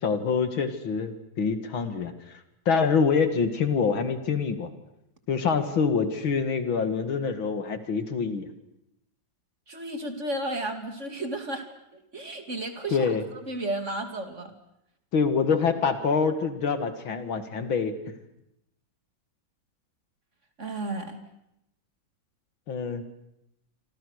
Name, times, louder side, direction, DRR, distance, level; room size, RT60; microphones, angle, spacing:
voice 1, 0.0-2.1 2.7-4.7 5.3-8.5 12.9-13.3 15.1-17.9 22.7-23.0, left 5 dB, 85° left, 9 dB, 2.9 m, -25 dB
voice 2, 9.7-11.6 11.9-13.2 13.5-14.5 20.6-21.2, right 1 dB, 35° right, 6 dB, 2.9 m, -33 dB
28.0 x 25.5 x 6.6 m, 0.81 s
omnidirectional pair, 2.1 m